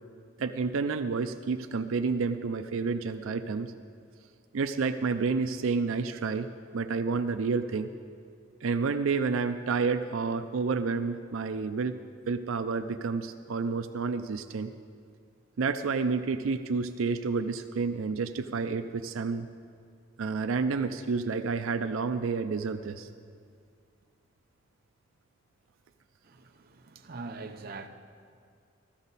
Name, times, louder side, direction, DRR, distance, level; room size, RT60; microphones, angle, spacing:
voice 1, 0.4-3.7 4.5-6.5 6.7-7.9 8.6-12.0 12.3-14.7 15.6-19.5 20.2-23.1, right 4 dB, 90° right, 0.5 m, -29 dB
voice 2, 26.2-27.9, right 3 dB, 50° right, 0.7 m, -42 dB
14.5 x 13.5 x 4.1 m
head